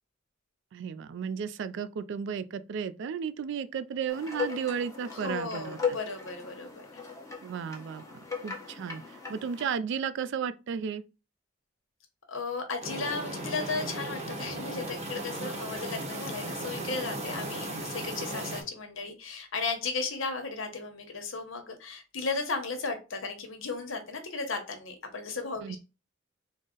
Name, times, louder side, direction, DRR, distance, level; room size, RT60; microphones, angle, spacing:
voice 1, 0.7-6.0 7.4-8.0 8.4-9.0 9.3-11.0 25.6-25.8, right 7 dB, 65° right, 0.3 m, -34 dB
sound 1, 4.1-9.8, left 6 dB, 15° left, 0.8 m, -37 dB
voice 2, 5.1-7.0 12.3-25.8, left 4 dB, 80° left, 0.9 m, -35 dB
sound 2, 12.8-18.6, right 1 dB, 35° right, 0.7 m, -36 dB
3.9 x 2.0 x 3.7 m
head